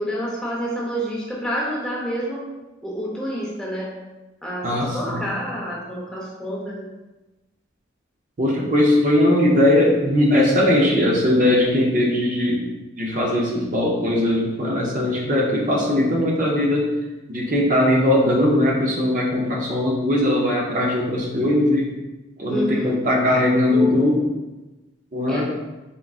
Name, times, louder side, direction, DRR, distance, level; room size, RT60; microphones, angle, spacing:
voice 1, 0.0-2.4 2.8-3.9 4.4-6.9 22.5-22.9 25.3-25.5, equal, 5° left, -5 dB, 0.6 m, -28 dB
voice 2, 4.6-5.2 8.4-12.6 13.0-16.9 17.3-21.9 22.4-24.3 25.1-25.5, left 1 dB, 40° right, -2 dB, 0.5 m, -19 dB
3.8 x 3.5 x 2.3 m, 1.1 s
head